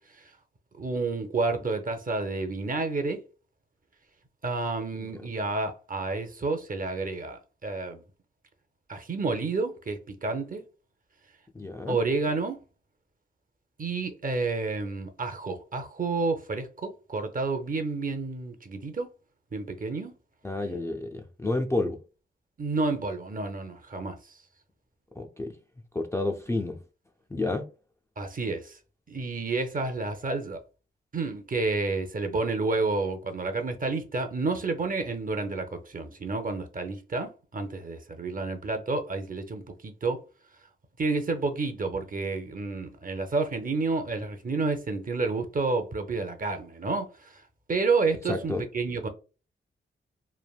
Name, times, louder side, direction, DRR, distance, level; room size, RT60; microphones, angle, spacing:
voice 1, 0.8-3.2 4.4-8.0 8.9-10.6 11.9-12.6 13.8-19.1 19.5-20.1 22.6-24.2 28.2-28.8 29.1-30.6 31.1-40.2 41.0-47.3 47.7-49.1, right 3 dB, 40° right, 0.6 m, -30 dB
voice 2, 11.5-12.0 20.4-22.0 25.2-25.5 25.9-26.8 27.3-27.7 48.3-48.6, left 2 dB, 15° left, 0.4 m, -30 dB
3.3 x 2.1 x 2.3 m
cardioid pair, 50°, 21 cm